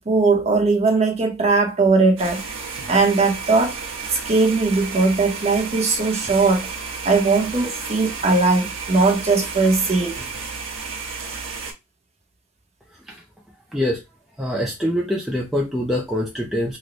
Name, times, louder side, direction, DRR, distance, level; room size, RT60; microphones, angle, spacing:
voice 1, 0.0-2.4 2.9-3.8 4.1-6.7 7.0-10.2, right 3 dB, 30° right, 0.8 m, -19 dB
sound 1, 2.2-11.7, right 5 dB, 70° right, 0.8 m, -32 dB
voice 2, 14.4-16.8, left 1 dB, ahead, 0.4 m, -24 dB
3.1 x 2.1 x 3.8 m
head